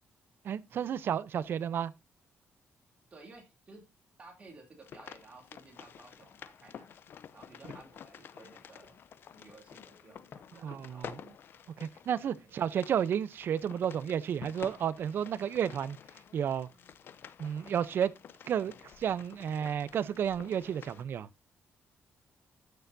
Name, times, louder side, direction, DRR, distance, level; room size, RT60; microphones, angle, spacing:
voice 1, 0.4-1.9 10.6-11.1 11.8-16.0 16.3-16.7 17.4-18.1 18.4-21.3, right 9 dB, 55° right, 0.6 m, -32 dB
voice 2, 3.1-3.8 4.2-6.9 7.3-9.0 9.4-11.2 12.4-12.5, right 3 dB, 30° right, 2.7 m, -55 dB
sound 1, 4.8-21.0, left 8 dB, 55° left, 0.5 m, -50 dB
12.5 x 6.8 x 2.6 m
wide cardioid pair, 175°, 5 cm